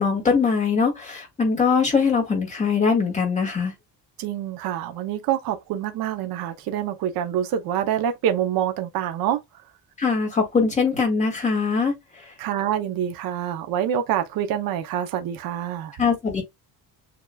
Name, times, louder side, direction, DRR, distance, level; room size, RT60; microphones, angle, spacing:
voice 1, 0.0-3.7 10.0-11.9 16.0-16.4, left 5 dB, 20° left, 1.8 m, -22 dB
voice 2, 4.2-9.4 12.4-16.0, right 10 dB, 65° right, 0.8 m, -26 dB
6.8 x 2.9 x 2.3 m
cardioid pair, 170°, 38 cm